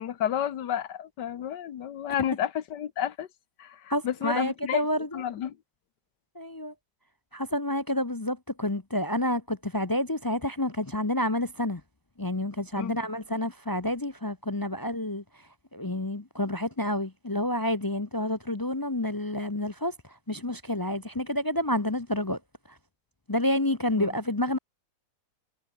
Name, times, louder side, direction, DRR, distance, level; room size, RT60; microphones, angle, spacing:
voice 1, 0.0-3.3 3.6-4.8 5.1-5.6 12.8-12.9 24.0-24.1, left 10 dB, 70° left, 1.8 m, -31 dB
voice 2, 3.9-5.2 6.4-6.7 7.3-11.8 12.2-15.2 15.7-19.9 20.3-22.4 23.3-24.6, left 1 dB, 30° left, 0.4 m, -29 dB
omnidirectional pair, 1.9 m